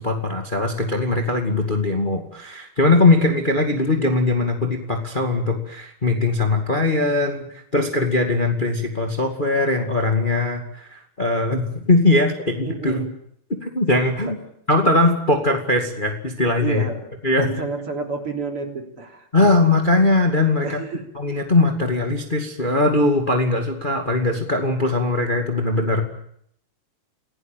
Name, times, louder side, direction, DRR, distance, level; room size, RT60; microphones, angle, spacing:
voice 1, 0.0-13.0 13.6-14.4 14.7-16.9 17.2-17.5 19.3-20.7 21.1-26.0, left 2 dB, 20° left, 4 dB, 2.1 m, -20 dB
voice 2, 12.6-13.1 14.3-14.4 16.6-17.1 17.3-19.5 20.6-21.0, right 4 dB, 50° right, 4 dB, 4.3 m, -29 dB
28.5 x 17.5 x 9.1 m, 0.69 s
omnidirectional pair, 3.3 m